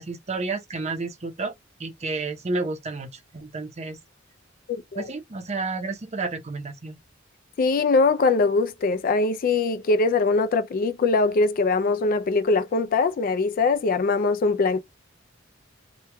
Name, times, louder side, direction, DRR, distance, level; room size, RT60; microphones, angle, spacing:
voice 1, 0.0-1.5 1.8-4.0 5.0-7.0, right 3 dB, 35° right, 0.6 m, -31 dB
voice 2, 4.7-5.1 7.6-14.8, left 3 dB, 45° left, 0.3 m, -22 dB
3.0 x 2.2 x 3.3 m
head